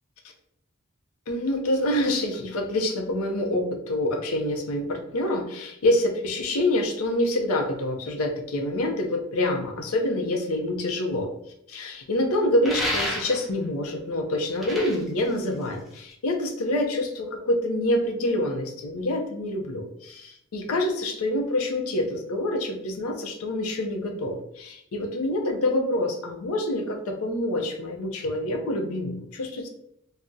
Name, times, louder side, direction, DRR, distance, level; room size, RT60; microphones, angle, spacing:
voice 1, 1.3-11.3 11.7-29.7, left 1 dB, 85° left, 3 dB, 0.5 m, -26 dB
sound 1, 12.6-13.6 14.4-16.1, equal, ahead, 0.5 m, -30 dB
2.6 x 2.0 x 3.5 m, 0.77 s
head